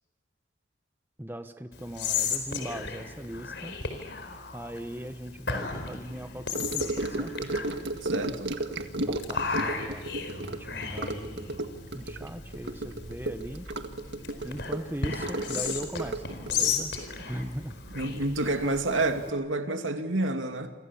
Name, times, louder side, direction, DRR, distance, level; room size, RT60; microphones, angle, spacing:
voice 1, 1.2-3.8 4.5-7.3 9.0-10.1 10.4-11.6 11.9-13.7 14.4-16.9 17.3-17.8, equal, 10° right, 8 dB, 1.1 m, -39 dB
Whispering, 1.7-19.3, left 5 dB, 65° left, 4.5 m, -35 dB
Gurgling / Sink (filling or washing) / Trickle dribble, 6.5-18.2 18.5-18.8 19.1-19.2, right 2 dB, 70° right, 1.8 m, -34 dB
voice 2, 8.0-8.5 17.9-20.7, right 2 dB, 90° right, 6 dB, 2.5 m, -29 dB
sound 1, 10.6-19.0, equal, 35° right, 2.7 m, -50 dB
28.5 x 25.5 x 7.2 m, 1.2 s
head